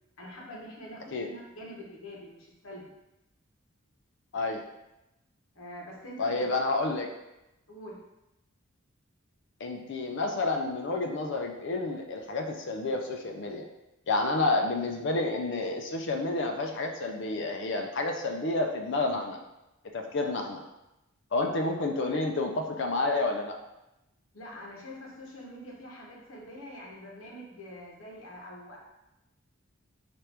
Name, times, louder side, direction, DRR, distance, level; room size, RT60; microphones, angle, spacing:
voice 1, 0.2-2.9 5.5-6.5 6.8-7.1 7.7-8.0 24.3-28.8, equal, 80° left, -3 dB, 1.0 m, -45 dB
voice 2, 6.2-7.1 9.6-13.7 14.1-19.4 19.9-20.6 21.3-23.5, left 2 dB, 60° left, 4 dB, 0.5 m, -29 dB
4.4 x 2.5 x 3.3 m, 0.94 s
head